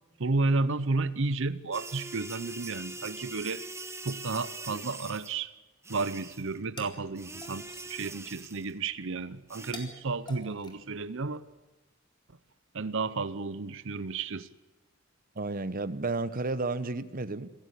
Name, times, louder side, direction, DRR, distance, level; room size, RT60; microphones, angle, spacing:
voice 1, 0.2-3.6 4.0-5.5 5.9-11.4 12.7-14.5, right 3 dB, 65° right, 0.9 m, -32 dB
sound 1, 1.7-5.4 5.8-6.6 7.2-8.8 9.5-9.7, right 3 dB, 15° right, 1.3 m, -42 dB
sound 2, 6.3-11.6, left 2 dB, 25° left, 4.3 m, -51 dB
voice 2, 15.3-17.5, right 3 dB, 45° right, 1.0 m, -32 dB
27.0 x 15.5 x 8.4 m
head